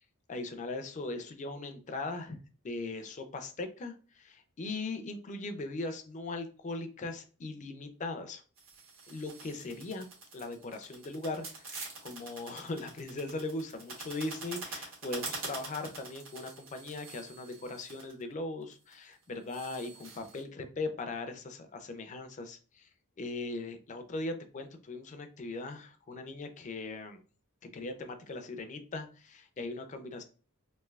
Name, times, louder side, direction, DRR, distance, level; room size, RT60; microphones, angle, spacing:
voice 1, 0.3-2.4 2.6-8.4 9.1-10.1 10.3-22.9 23.2-27.2 27.7-30.2, left 2 dB, 35° left, 7 dB, 0.4 m, -39 dB
sound 1, 8.6-18.2 18.7-19.1 19.5-20.4, right 3 dB, 60° right, 1.2 m, -45 dB
3.1 x 2.7 x 2.3 m, 0.38 s
head